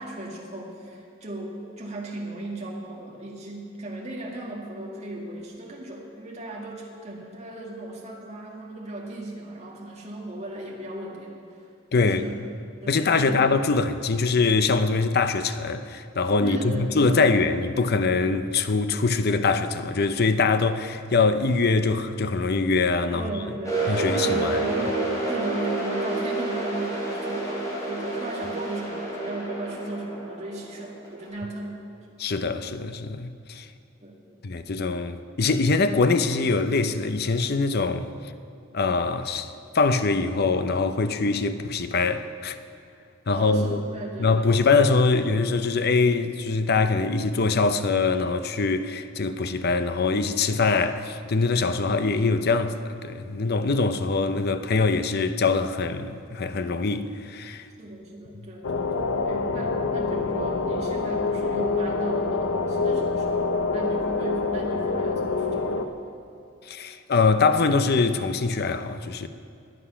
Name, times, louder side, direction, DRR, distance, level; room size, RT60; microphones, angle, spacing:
voice 1, 0.0-11.4 12.0-12.4 12.8-13.4 16.4-17.4 23.1-31.8 32.1-32.2 34.0-34.4 43.3-44.5 57.8-66.0, right 1 dB, 30° right, 2.2 m, -36 dB
voice 2, 11.9-12.2 12.9-23.2 23.9-24.6 32.2-33.7 34.4-38.1 38.7-42.6 43.3-43.8 44.2-57.7 66.7-69.3, left 4 dB, 50° left, 0.6 m, -23 dB
sound 1, 23.6-31.3, right 2 dB, 15° left, 3.6 m, -29 dB
sound 2, 58.6-65.8, left 3 dB, 80° left, 0.8 m, -26 dB
21.5 x 8.0 x 5.7 m
head